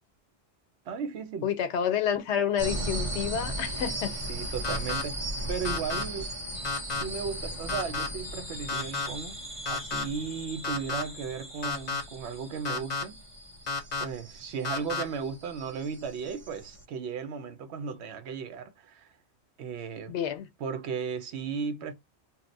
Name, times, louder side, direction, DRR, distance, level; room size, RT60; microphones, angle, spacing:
voice 1, 0.9-1.5 4.3-6.3 6.9-9.4 9.6-13.2 14.0-19.1 19.6-20.1 20.6-21.9, right 6 dB, 75° right, 0.9 m, -35 dB
voice 2, 1.4-4.2 20.1-20.5, left 8 dB, 90° left, 0.9 m, -29 dB
sound 1, 2.6-16.8, right 1 dB, 30° right, 0.8 m, -37 dB
sound 2, 4.6-5.0 5.6-6.0 6.6-7.0 7.7-8.1 8.7-9.1 9.6-10.0 10.6-11.0 11.6-12.0 12.6-13.0 13.7-14.0 14.6-15.0, left 4 dB, 45° left, 0.7 m, -31 dB
2.8 x 2.1 x 3.8 m
omnidirectional pair, 1.1 m